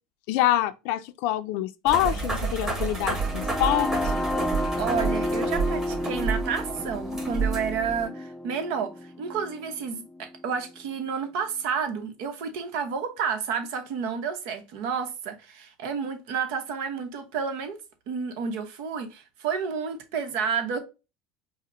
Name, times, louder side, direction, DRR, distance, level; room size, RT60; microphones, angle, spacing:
voice 1, 0.3-3.9, left 13 dB, 70° left, 0.4 m, -25 dB
sound 1, 1.9-8.0, right 4 dB, 20° right, 1.6 m, -30 dB
sound 2, 2.9-10.8, left 1 dB, 10° left, 0.6 m, -31 dB
voice 2, 4.8-17.8 18.1-20.8, right 6 dB, 70° right, 0.9 m, -30 dB
4.8 x 2.1 x 3.1 m
supercardioid pair, 110°, 3 cm